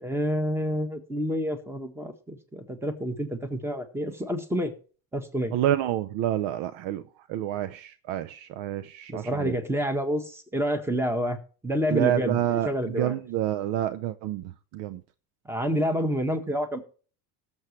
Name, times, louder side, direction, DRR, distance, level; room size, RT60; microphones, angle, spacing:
voice 1, 0.0-4.7 5.1-5.5 9.1-11.4 11.6-13.2 15.4-16.8, equal, 5° right, 1.6 m, -28 dB
voice 2, 5.5-7.0 7.3-9.5 11.9-15.0, right 12 dB, 75° right, 0.7 m, -28 dB
18.0 x 7.2 x 3.1 m
supercardioid pair, 100°, 45 cm